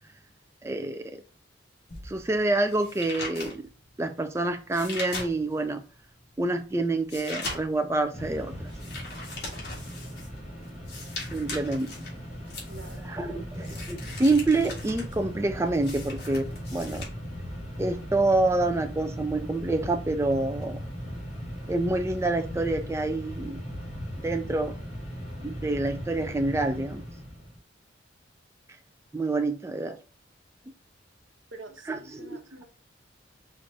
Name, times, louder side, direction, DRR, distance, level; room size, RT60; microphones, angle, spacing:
voice 1, 0.6-1.2 2.0-3.7 4.0-5.8 6.4-8.7 11.3-11.9 13.0-17.1 17.8-20.8 21.7-23.6 24.2-24.8 25.4-27.0 29.1-30.0 31.9-32.4, right 2 dB, 15° right, 0.3 m, -27 dB
sound 1, 1.9-5.7 6.2-17.0, left 2 dB, 55° left, 1.5 m, -40 dB
Mechanisms, 8.1-27.6, equal, 35° left, 1.5 m, -38 dB
voice 2, 12.7-13.7 31.5-32.6, right 3 dB, 90° right, 0.9 m, -47 dB
4.5 x 2.5 x 3.9 m
head